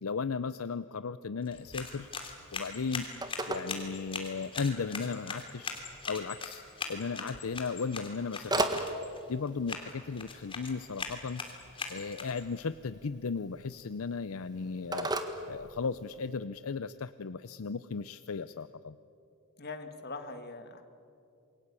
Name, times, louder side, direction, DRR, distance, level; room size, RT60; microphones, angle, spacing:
voice 1, 0.0-2.1 2.5-3.1 3.5-5.8 6.1-6.6 6.9-8.9 9.3-11.4 11.9-15.1 15.5-19.0, left 5 dB, 70° left, 14 dB, 0.6 m, -36 dB
sound 1, 1.4-12.6, left 4 dB, 25° left, 3.0 m, -41 dB
Telephone, 1.9-16.4, right 2 dB, 20° right, 1.6 m, -40 dB
voice 2, 7.2-7.5 19.6-20.8, left 3 dB, 45° left, 8 dB, 1.9 m, -43 dB
28.0 x 22.5 x 8.4 m, 2.7 s
head